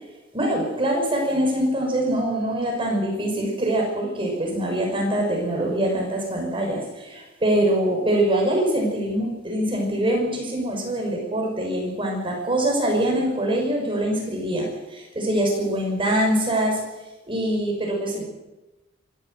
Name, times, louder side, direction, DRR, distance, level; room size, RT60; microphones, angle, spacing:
voice 1, 0.3-16.8 17.3-18.2, right 1 dB, 25° right, 0 dB, 5.8 m, -24 dB
25.5 x 14.0 x 7.8 m, 1.1 s
head